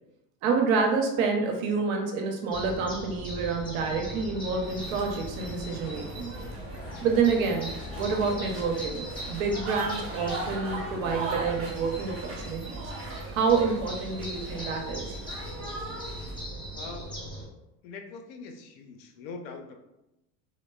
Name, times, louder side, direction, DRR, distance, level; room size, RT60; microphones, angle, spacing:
voice 1, 0.4-6.3 7.0-7.7 8.0-15.2, right 5 dB, 80° right, 2 dB, 0.7 m, -28 dB
sound 1, 2.5-17.4, equal, 10° left, 0.9 m, -39 dB
sound 2, 3.5-11.2, left 2 dB, 30° left, 0.4 m, -47 dB
sound 3, 4.6-16.4, right 3 dB, 30° right, 1.1 m, -40 dB
voice 2, 16.7-17.2 17.8-19.7, left 4 dB, 75° left, 5 dB, 0.6 m, -42 dB
3.1 x 2.1 x 2.3 m, 0.91 s
supercardioid pair, 95°, 41 cm